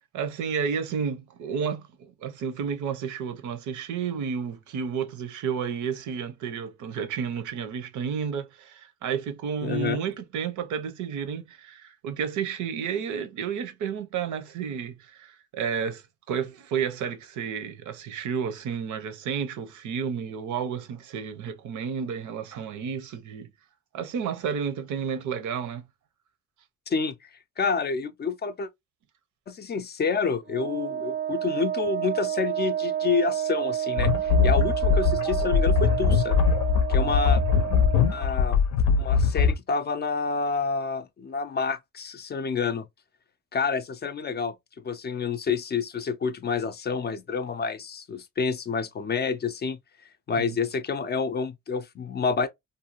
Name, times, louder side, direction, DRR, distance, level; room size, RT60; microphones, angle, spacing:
voice 1, 0.1-23.5 23.9-25.8 50.4-50.6, right 7 dB, 75° right, 0.7 m, -31 dB
voice 2, 9.6-10.0 26.9-27.3 27.6-28.7 29.5-36.4 36.9-37.4 38.1-38.6 39.0-42.8 43.5-44.5 44.8-49.8 50.3-52.5, left 5 dB, 35° left, 0.4 m, -28 dB
Wind instrument woodwind instrument, 30.5-38.3, right 10 dB, 35° right, 0.5 m, -30 dB
sound 1, 34.0-39.5, left 6 dB, 90° left, 0.6 m, -22 dB
2.6 x 2.3 x 2.9 m
cardioid pair, 90°, 30 cm